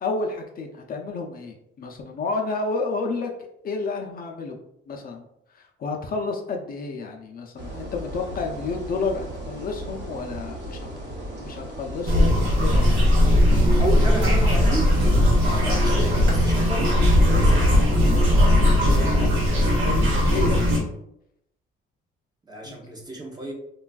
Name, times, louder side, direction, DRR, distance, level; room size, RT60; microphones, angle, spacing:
voice 1, 0.0-3.3 3.6-4.6 4.9-5.3 5.5-10.9 11.4-13.0 15.5-15.7 18.9-19.3 19.8-20.7 22.6-22.7, left 3 dB, 45° left, 2 dB, 0.4 m, -30 dB
sound 1, 7.6-18.3, equal, 55° right, 0.8 m, -34 dB
sound 2, 12.0-20.8, left 1 dB, 75° right, 1.1 m, -18 dB
voice 2, 13.8-14.9 15.6-17.8 22.5-23.5, right 1 dB, 20° right, 0 dB, 0.5 m, -31 dB
3.3 x 2.3 x 2.3 m, 0.79 s
cardioid pair, 125°, 21 cm